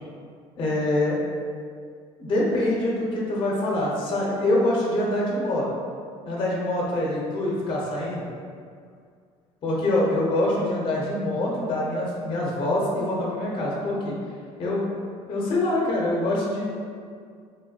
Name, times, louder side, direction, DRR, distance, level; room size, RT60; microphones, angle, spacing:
voice 1, 0.6-1.2 2.2-5.7 6.2-8.3 9.6-14.2 14.6-14.9 15.3-16.7, left 1 dB, 40° left, -4 dB, 0.6 m, -25 dB
3.1 x 2.6 x 2.2 m, 2.1 s
cardioid pair, 115°, 13 cm